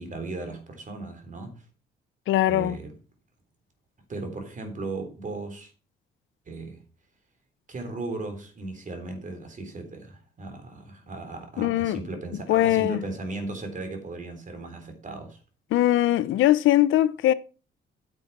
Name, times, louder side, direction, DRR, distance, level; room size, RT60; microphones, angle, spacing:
voice 1, 0.0-1.7 2.5-2.9 4.1-5.7 6.5-6.8 7.7-15.4, right 3 dB, 40° right, 3.8 m, -36 dB
voice 2, 2.3-2.8 11.6-12.0 12.5-13.0 15.7-17.3, left 14 dB, 85° left, 0.7 m, -21 dB
9.8 x 7.5 x 5.9 m
cardioid pair, 90°, 20 cm